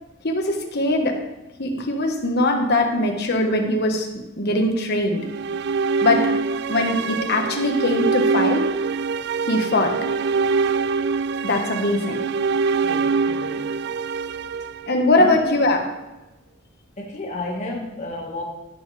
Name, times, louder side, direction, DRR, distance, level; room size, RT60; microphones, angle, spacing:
voice 1, 0.2-1.2 1.6-4.1 4.4-5.2 6.0-6.3 6.7-8.6 9.5-9.9 11.4-12.2 14.9-15.8, left 2 dB, 55° left, 3 dB, 1.5 m, -21 dB
sound 1, 5.2-15.4, right 4 dB, 55° right, 0.3 m, -24 dB
voice 2, 12.8-13.7 15.2-15.3 17.0-18.4, left 2 dB, 35° left, -3 dB, 1.8 m, -32 dB
15.5 x 6.9 x 3.4 m, 1.0 s
head